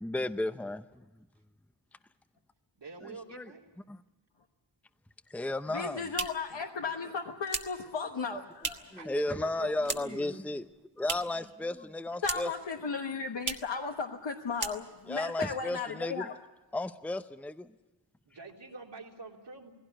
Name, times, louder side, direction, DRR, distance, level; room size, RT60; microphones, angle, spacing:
voice 1, 0.0-1.0 3.0-3.5 3.9-4.0 5.3-6.0 8.9-10.6 11.0-12.5 15.1-16.3 16.7-17.7, left 2 dB, 5° left, 9 dB, 0.7 m, -34 dB
voice 2, 2.8-3.7 8.9-10.3 18.3-19.7, right 4 dB, 70° right, -2 dB, 3.5 m, -46 dB
sound 1, 5.6-9.0 9.3-10.3 10.6-11.5 11.8-12.7 12.9-13.0 13.4-13.8 14.1-14.3 14.5-15.2, right 4 dB, 45° right, 1.6 m, -38 dB
voice 3, 5.7-9.0 12.2-16.3, left 5 dB, 75° left, 1 dB, 1.4 m, -35 dB
19.0 x 17.0 x 10.0 m, 1.1 s
wide cardioid pair, 75°, 43 cm